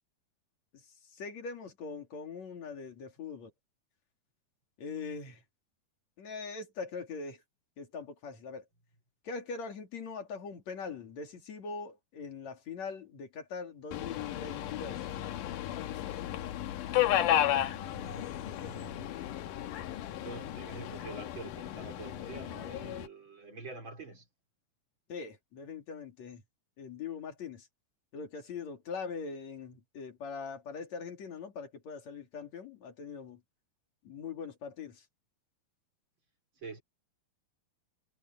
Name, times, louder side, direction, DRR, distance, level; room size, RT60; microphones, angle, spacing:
voice 1, 1.1-3.5 4.8-5.4 6.2-7.4 7.8-8.6 9.2-15.0 25.1-26.4 26.8-27.7 28.1-33.4 34.0-35.1, left 5 dB, 45° left, 3.8 m, -42 dB
Subway metro underground, 13.9-23.1, left 12 dB, 70° left, 2.3 m, -33 dB
voice 2, 17.6-19.1 20.2-24.3 36.6-36.8, right 3 dB, 30° right, 4.3 m, -46 dB
omnidirectional pair, 4.5 m